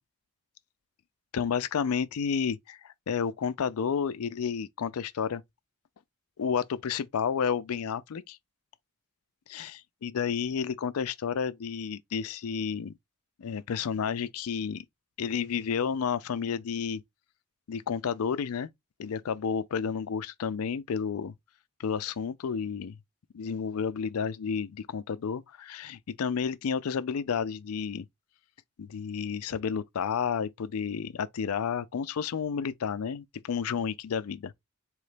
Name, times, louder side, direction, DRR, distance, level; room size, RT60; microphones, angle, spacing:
voice 1, 1.3-5.4 6.4-8.4 9.5-12.9 13.4-14.9 15.2-17.0 17.7-18.7 19.0-21.3 21.8-23.0 23.3-28.0 28.8-34.5, left 6 dB, 85° left, 0.4 m, -31 dB
3.9 x 3.1 x 3.3 m
head